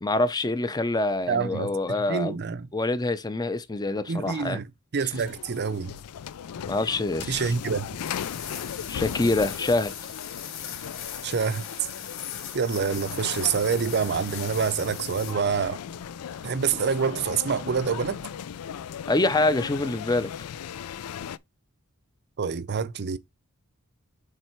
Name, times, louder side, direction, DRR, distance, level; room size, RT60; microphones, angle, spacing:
voice 1, 0.0-2.4 2.7-4.6 6.7-7.5 8.9-9.9 19.1-20.3, left 2 dB, 20° left, 0.6 m, -25 dB
voice 2, 1.3-1.7 2.1-2.7 4.1-4.7 4.9-5.9 7.3-8.0 11.2-11.6 12.5-15.8 16.4-18.2 22.4-23.2, right 6 dB, 50° right, 0.6 m, -26 dB
sound 1, 5.1-21.4, left 8 dB, 80° left, 0.4 m, -37 dB
sound 2, 8.0-15.3, left 8 dB, 65° left, 2.1 m, -39 dB
7.5 x 3.3 x 4.5 m
head